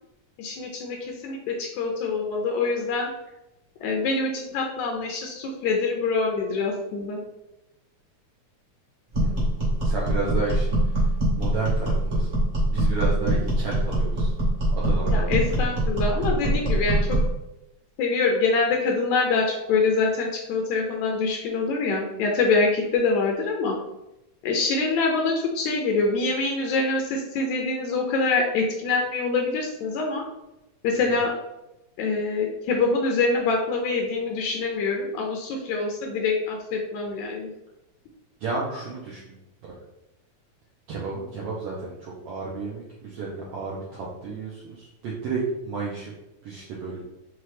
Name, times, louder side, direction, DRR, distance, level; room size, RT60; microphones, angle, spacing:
voice 1, 0.4-3.1 3.8-7.2 15.0-17.2 18.0-23.8 24.4-30.2 30.8-31.3 32.0-37.5, left 3 dB, 80° left, 1 dB, 1.9 m, -25 dB
sound 1, 9.1-17.3, right 1 dB, 35° right, 0.8 m, -23 dB
voice 2, 9.8-10.8 11.4-12.3 12.6-14.3 14.7-15.3 38.4-39.2 40.9-46.1 46.4-47.1, right 4 dB, 70° right, -5 dB, 1.5 m, -32 dB
5.9 x 2.4 x 3.2 m, 0.92 s
omnidirectional pair, 3.4 m